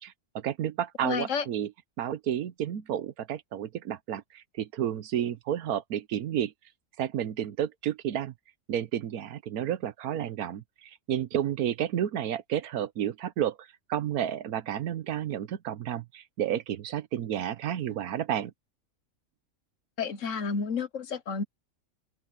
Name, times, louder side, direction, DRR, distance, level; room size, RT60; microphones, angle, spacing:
voice 1, 0.0-1.7 2.0-6.5 7.0-8.3 8.7-18.5, right 10 dB, 90° right, 1.3 m, -31 dB
voice 2, 1.0-1.4 20.0-21.4, left 5 dB, 60° left, 1.4 m, -31 dB
open air
omnidirectional pair, 1.5 m